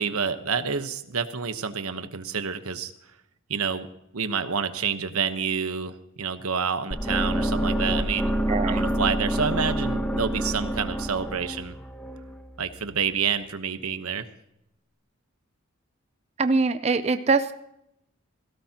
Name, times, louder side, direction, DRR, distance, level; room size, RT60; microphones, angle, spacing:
voice 1, 0.0-2.9 3.5-3.9 4.1-8.3 8.6-11.7 12.6-14.3, right 6 dB, 85° right, 10 dB, 1.1 m, -28 dB
sound 1, 6.9-13.0, right 1 dB, 5° left, 1.0 m, -27 dB
voice 2, 8.5-8.8 16.4-17.5, right 4 dB, 30° right, 11 dB, 0.5 m, -23 dB
17.5 x 17.0 x 2.9 m, 0.80 s
head